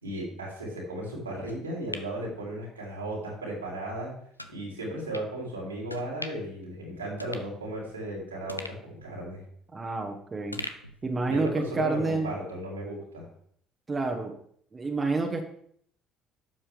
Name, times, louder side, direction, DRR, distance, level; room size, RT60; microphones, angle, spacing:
voice 1, 0.0-4.1 4.5-9.4 11.3-13.3, right 1 dB, 85° right, -2 dB, 3.1 m, -35 dB
sound 1, 1.5-3.1 3.5-3.6 4.4-4.6 5.1-5.3 5.9-6.6 6.9-7.0 7.2-8.1 8.5-10.1 10.5-11.7 12.0-12.1, left 1 dB, 90° left, 0.4 m, -42 dB
voice 2, 9.7-10.6 11.0-12.3 13.9-14.4 14.7-15.5, right 3 dB, 25° right, 3 dB, 1.3 m, -29 dB
11.5 x 7.3 x 3.5 m, 0.64 s
figure-of-eight pair, 55°, 0 cm